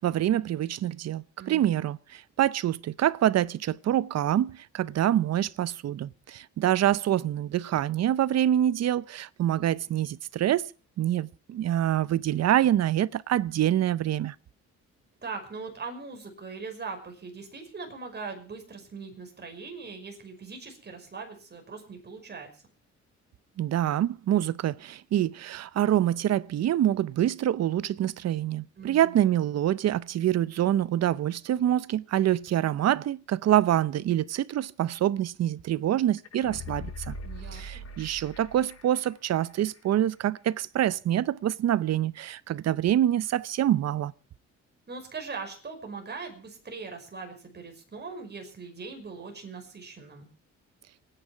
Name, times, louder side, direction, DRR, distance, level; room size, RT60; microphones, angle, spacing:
voice 1, 0.0-10.7 11.0-14.3 23.6-37.1 37.5-44.1, right 12 dB, 60° right, 0.7 m, -26 dB
voice 2, 1.4-1.8 15.2-22.5 28.8-29.2 37.2-37.8 44.9-50.3, right 4 dB, 35° right, 5.5 m, -40 dB
sound 1, 36.2-39.1 39.4-39.5, left 1 dB, 55° left, 5.6 m, -41 dB
28.5 x 10.0 x 4.6 m
cardioid pair, 90°, 30 cm